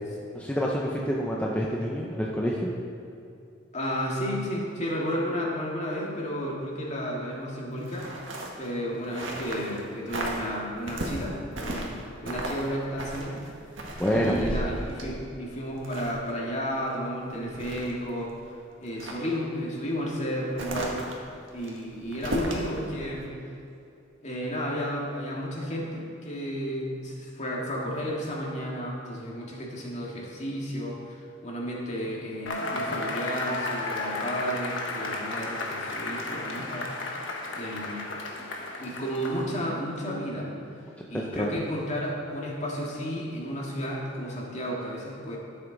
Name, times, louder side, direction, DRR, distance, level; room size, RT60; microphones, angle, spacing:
voice 1, 0.3-2.7 14.0-14.5 41.1-41.6, equal, 5° left, -3 dB, 0.7 m, -27 dB
voice 2, 3.7-8.1 8.5-13.4 14.1-21.0 21.5-23.3 24.2-36.9 37.5-38.1 38.8-40.5 41.1-45.4, equal, 35° left, -3 dB, 2.0 m, -32 dB
sound 1, 7.8-9.8 10.1-10.5 10.9-12.0 12.3-12.7 13.0-16.3 16.8-16.9 17.3-18.4 18.8-19.3 20.6-22.7 23.1-23.3, right 1 dB, 85° right, 1.5 m, -34 dB
Cheering / Applause / Crowd, 32.5-39.7, left 2 dB, 75° left, 1.3 m, -33 dB
13.0 x 8.0 x 4.0 m, 2.6 s
head